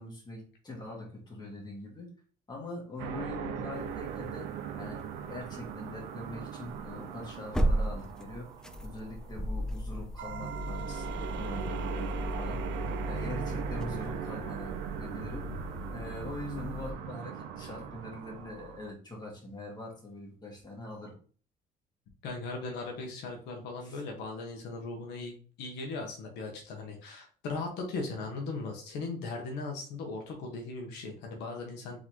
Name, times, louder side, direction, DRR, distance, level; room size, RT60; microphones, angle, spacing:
voice 1, 0.0-2.1 2.5-4.5 4.7-8.5 8.8-12.6 13.1-15.5 15.9-21.1 23.8-24.0, left 2 dB, 25° left, -2 dB, 2.1 m, -43 dB
sound 1, 3.0-9.8 10.2-18.9, right 8 dB, 85° right, 0.5 m, -39 dB
sound 2, 4.2-4.3 5.0-5.1 6.3-16.9, equal, 5° left, 0.5 m, -35 dB
voice 2, 22.2-32.0, left 3 dB, 85° left, 2 dB, 1.2 m, -38 dB
3.9 x 3.8 x 3.2 m, 0.41 s
cardioid pair, 110°, 17 cm